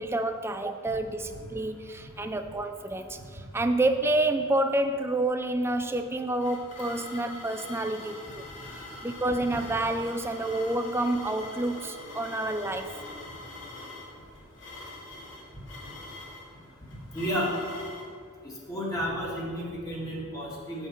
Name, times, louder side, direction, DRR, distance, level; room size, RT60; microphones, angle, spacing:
voice 1, 0.0-8.4 8.7-12.9, right 2 dB, 10° right, 7 dB, 0.4 m, -29 dB
sound 1, 5.9-18.1, left 2 dB, 60° left, 2.4 m, -44 dB
voice 2, 17.1-17.5 18.4-20.9, equal, 15° left, -5 dB, 2.0 m, -32 dB
8.9 x 7.2 x 5.4 m, 2.2 s
head